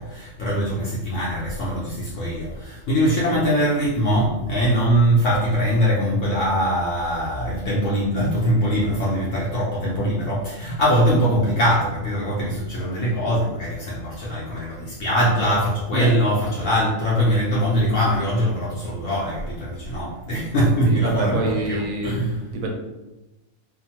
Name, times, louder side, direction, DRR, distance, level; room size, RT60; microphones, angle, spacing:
voice 1, 0.0-22.4, equal, 65° left, -6 dB, 0.9 m, -22 dB
voice 2, 20.8-22.1 22.5-22.7, right 1 dB, 70° right, 1 dB, 0.9 m, -25 dB
2.7 x 2.2 x 2.8 m, 1.0 s
omnidirectional pair, 1.5 m